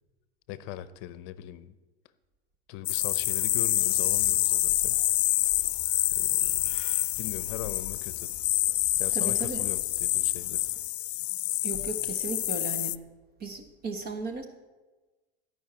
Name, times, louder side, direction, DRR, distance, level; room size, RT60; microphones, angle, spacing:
voice 1, 0.5-1.7 2.7-5.0 6.1-6.8 7.2-8.3 9.0-10.6, left 13 dB, 55° left, 15 dB, 0.8 m, -40 dB
sound 1, 2.9-13.0, left 16 dB, 90° left, 0.5 m, -27 dB
Bird, 2.9-10.9, left 6 dB, 20° left, 2.0 m, -52 dB
voice 2, 9.1-9.7 11.6-13.0 13.4-14.5, right 4 dB, 30° right, 7 dB, 1.2 m, -36 dB
14.5 x 5.6 x 8.8 m, 1.2 s
supercardioid pair, 135°, 31 cm